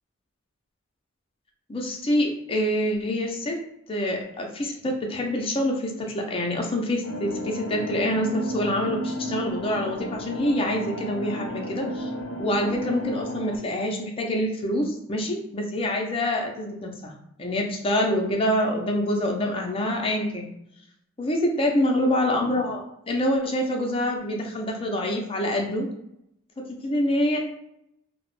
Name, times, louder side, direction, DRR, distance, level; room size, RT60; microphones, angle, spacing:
voice 1, 1.7-3.6 3.9-12.1 12.4-17.1 17.4-20.5 21.2-25.9 26.7-27.4, left 1 dB, 30° left, 0 dB, 0.5 m, -26 dB
sound 1, 7.0-13.6, equal, 90° left, 0.4 m, -33 dB
2.3 x 2.0 x 3.1 m, 0.78 s
head